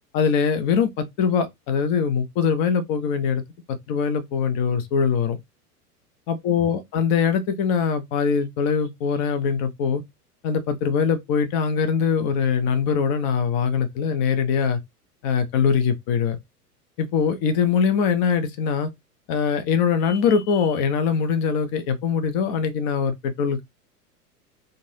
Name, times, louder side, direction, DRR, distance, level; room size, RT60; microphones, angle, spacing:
voice 1, 0.1-3.4 3.7-5.4 6.3-10.0 10.4-14.8 15.2-16.4 17.0-18.9 19.3-23.6, left 6 dB, 30° left, 0.6 m, -22 dB
3.7 x 2.5 x 2.7 m
figure-of-eight pair, 95°, 48 cm